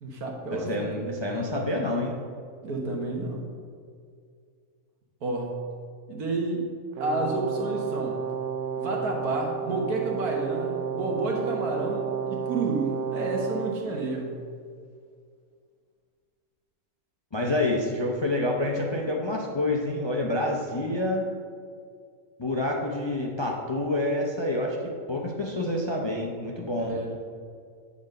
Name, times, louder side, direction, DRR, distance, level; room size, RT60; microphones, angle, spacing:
voice 1, 0.0-0.7 1.0-1.2 2.6-3.4 5.2-5.6 6.1-6.7 7.0-8.2 8.8-14.4 26.8-27.2, right 2 dB, 85° right, 0 dB, 1.8 m, -30 dB
voice 2, 0.5-2.1 17.3-21.3 22.4-24.8 25.1-26.9, left 1 dB, 30° left, 0 dB, 0.5 m, -28 dB
Brass instrument, 6.9-13.8, right 8 dB, 60° right, 0.9 m, -31 dB
8.6 x 4.1 x 6.5 m, 2.2 s
omnidirectional pair, 1.5 m